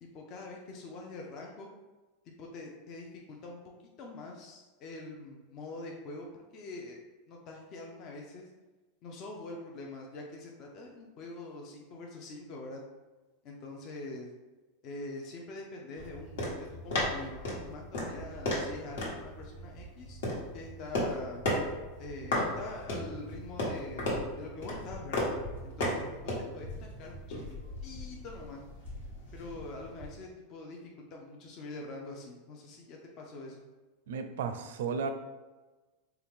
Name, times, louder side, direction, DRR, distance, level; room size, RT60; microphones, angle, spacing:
voice 1, 0.0-1.7 2.4-3.6 4.0-7.0 7.3-8.5 9.0-12.8 13.4-14.3 14.8-20.2 20.5-21.4 22.0-25.3 25.6-26.0 26.5-27.4 27.8-28.6 29.3-30.8 31.1-33.6, left 2 dB, 35° left, 0 dB, 0.4 m, -44 dB
sound 1, 16.0-30.2, left 1 dB, 75° left, 1.3 m, -36 dB
voice 2, 34.1-35.1, right 6 dB, 80° right, 8 dB, 0.4 m, -34 dB
4.4 x 2.3 x 3.5 m, 1.2 s
supercardioid pair, 170°, 0 cm